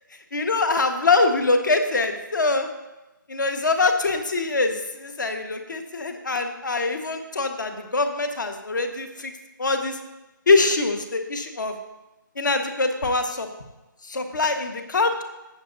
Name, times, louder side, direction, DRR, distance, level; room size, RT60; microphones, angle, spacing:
voice 1, 0.3-2.7 3.3-9.3 9.6-10.0 10.5-11.8 12.3-13.5 14.0-15.2, left 3 dB, 60° left, 6 dB, 1.4 m, -23 dB
14.0 x 8.2 x 2.7 m, 1.0 s
hypercardioid pair, 170°, 11 cm